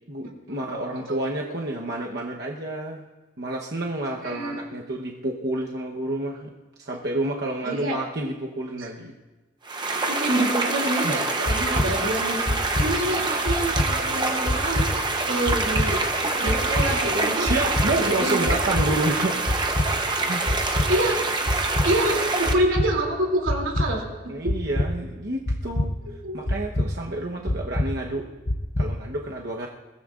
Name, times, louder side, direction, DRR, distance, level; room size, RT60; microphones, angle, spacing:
voice 1, 0.1-3.1 3.4-6.5 6.8-9.1 11.0-11.2 17.4-19.4 19.8-20.4 24.3-26.0 26.3-28.3 28.8-29.7, right 2 dB, 55° right, -1 dB, 1.0 m, -29 dB
voice 2, 4.2-4.8 7.6-8.0 8.8-8.9 9.8-14.9 15.3-16.0 16.4-17.5 18.0-18.6 20.6-21.2 21.8-24.0 24.4-24.5 26.0-26.4, right 1 dB, 85° right, 0 dB, 2.9 m, -27 dB
sound 1, 9.6-22.5, right 3 dB, 20° right, 0.8 m, -26 dB
sound 2, 11.5-11.9 12.5-12.9 13.5-13.9 14.5-14.9 15.5-15.9 16.5-16.9 17.5-17.9 18.5-18.9 19.5-19.9 20.5-20.9 21.5-21.9 22.5-22.9 23.5-23.9 24.5-24.9 25.5-25.9 26.5-26.9 27.5-27.9 28.5-28.9, left 1 dB, 30° left, 0.7 m, -24 dB
22.0 x 17.0 x 2.5 m, 1.2 s
head